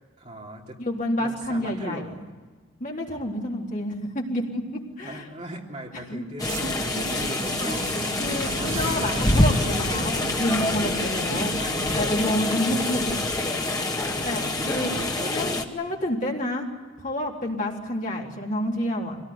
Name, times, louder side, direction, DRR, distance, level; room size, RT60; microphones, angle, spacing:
voice 1, 0.2-0.8 1.1-2.3 3.2-3.3 5.0-9.8 11.2-11.9 14.0-15.4 16.0-16.1, right 1 dB, 35° right, -1 dB, 3.3 m, -40 dB
voice 2, 0.8-2.1 2.8-5.3 6.1-6.2 8.2-11.5 12.0-13.2 14.2-14.9 15.3-16.7 17.0-19.2, left 1 dB, 40° left, -2 dB, 3.9 m, -29 dB
sound 1, 6.4-15.6, left 2 dB, 20° left, 1.9 m, -26 dB
sound 2, 6.4-14.5, right 2 dB, 80° right, 1.5 m, -37 dB
26.0 x 18.0 x 9.7 m, 1.4 s
head